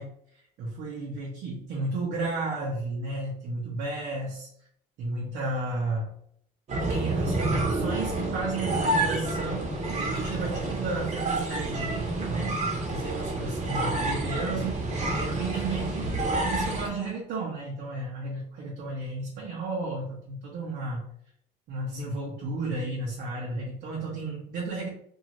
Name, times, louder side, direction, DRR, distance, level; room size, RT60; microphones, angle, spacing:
voice 1, 0.0-4.5 5.0-6.1 6.9-12.6 12.9-16.2 16.4-21.0 21.7-24.9, right 3 dB, 75° right, -4 dB, 0.8 m, -33 dB
sound 1, 6.7-16.9, right 2 dB, 45° right, 0.9 m, -29 dB
2.7 x 2.4 x 2.9 m, 0.69 s
cardioid pair, 110°, 17 cm